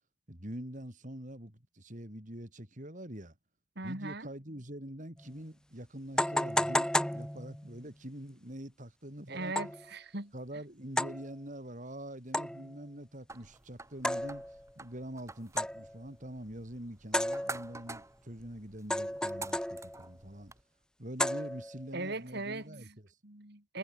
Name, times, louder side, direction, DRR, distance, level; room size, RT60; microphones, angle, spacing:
voice 1, 0.3-3.3 3.8-9.5 10.3-14.4 14.8-20.5 21.0-23.1, right 1 dB, 40° right, 4.5 m, -45 dB
voice 2, 3.8-4.3 9.3-10.3 21.9-23.0 23.2-23.8, right 2 dB, 55° right, 3.8 m, -39 dB
sound 1, 5.2-5.3 6.2-7.8 9.6-9.9 11.0-11.3 12.3-12.8 14.0-14.7 15.6-16.0 17.1-17.9 18.9-20.1 21.2-21.9, left 1 dB, 5° left, 1.9 m, -33 dB
sound 2, 13.3-20.6, right 3 dB, 15° right, 3.2 m, -48 dB
head